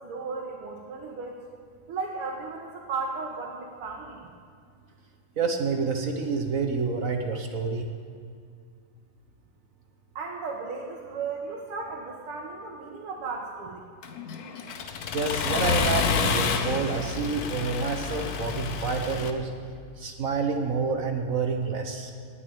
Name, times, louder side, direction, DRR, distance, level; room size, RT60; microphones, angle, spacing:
voice 1, 0.0-1.4 1.9-4.2 10.2-13.8, right 4 dB, 80° right, -2 dB, 2.3 m, -35 dB
voice 2, 5.4-7.9 15.1-19.5 20.0-22.1, right 4 dB, 50° right, 5 dB, 1.0 m, -28 dB
Accelerating revving vroom, 14.0-19.3, left 6 dB, 60° left, 1.1 m, -29 dB
18.0 x 6.7 x 8.8 m, 2.2 s
omnidirectional pair, 2.4 m